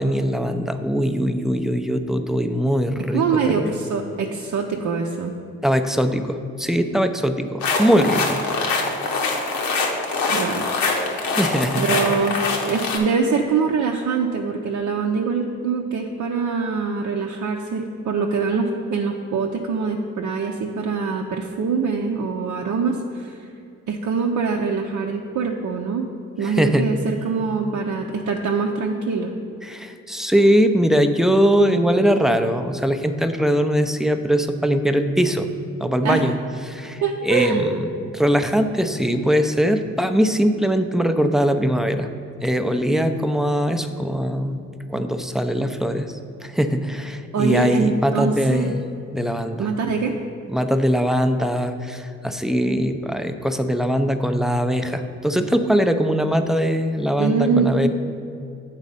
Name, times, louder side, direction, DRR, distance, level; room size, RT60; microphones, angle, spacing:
voice 1, 0.0-3.7 5.6-8.4 11.2-11.8 26.4-26.9 29.6-35.5 35.8-36.4 36.6-42.1 42.4-44.6 44.9-46.1 46.4-48.8 49.1-49.7 50.5-57.9, equal, ahead, 7 dB, 0.5 m, -21 dB
voice 2, 3.1-5.3 10.3-10.6 11.7-12.4 12.6-23.4 23.9-26.1 26.4-29.3 36.0-36.2 37.0-37.8 47.3-48.8 49.6-50.1 57.2-57.9, right 5 dB, 55° right, 0 dB, 0.6 m, -23 dB
sound 1, 7.6-13.0, left 3 dB, 75° left, 1.0 m, -23 dB
8.2 x 4.0 x 5.4 m, 2.5 s
hypercardioid pair, 50°, 35 cm